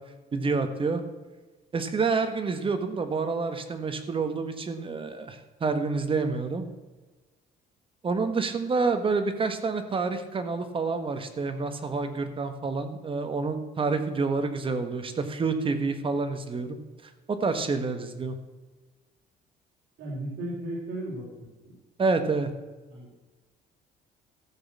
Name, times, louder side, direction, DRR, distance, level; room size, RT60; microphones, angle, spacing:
voice 1, 0.3-1.0 1.7-6.7 8.0-16.8 17.3-18.4 22.0-22.5, right 4 dB, 30° right, 9 dB, 1.4 m, -28 dB
voice 2, 20.0-21.7 22.9-23.1, right 1 dB, 70° right, -5 dB, 3.7 m, -36 dB
14.0 x 6.4 x 7.3 m, 1.3 s
cardioid pair, 110°, 17 cm